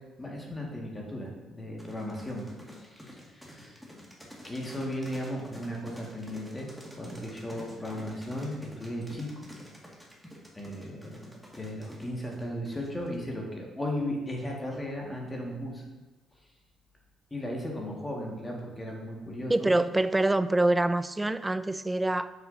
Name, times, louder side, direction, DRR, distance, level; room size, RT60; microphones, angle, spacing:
voice 1, 0.2-2.5 2.8-3.8 4.4-6.7 7.0-9.4 10.5-11.3 11.5-15.8 17.3-19.8, left 1 dB, 25° left, 1.7 m, -36 dB
sound 1, 1.8-13.3, equal, ahead, 1.9 m, -48 dB
voice 2, 19.5-22.3, right 2 dB, 15° right, 0.4 m, -25 dB
6.9 x 6.8 x 2.7 m
supercardioid pair, 60°, 0 cm